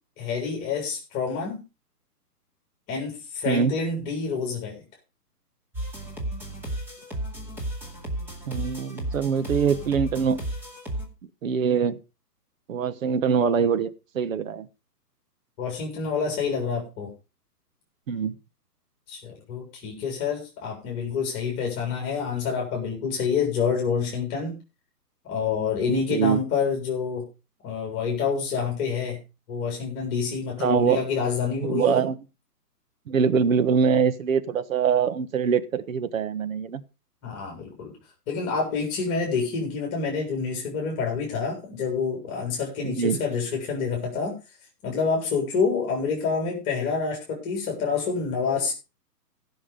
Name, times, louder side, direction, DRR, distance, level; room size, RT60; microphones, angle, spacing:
voice 1, 0.2-1.6 2.9-4.8 15.6-17.1 19.1-24.6 25.2-27.3 27.6-29.2 29.5-32.0 37.2-37.9 38.3-44.4 44.8-48.7, left 5 dB, 25° left, 0 dB, 4.0 m, -27 dB
sound 1, 5.7-11.1, right 1 dB, 5° right, 2.4 m, -33 dB
voice 2, 8.5-10.4 11.4-12.0 12.7-14.7 18.1-18.4 26.1-26.4 30.6-31.1 31.6-32.1 33.1-36.8 42.8-43.2, right 6 dB, 55° right, 13 dB, 1.3 m, -23 dB
16.0 x 6.3 x 5.1 m, 0.30 s
hypercardioid pair, 150°, 48 cm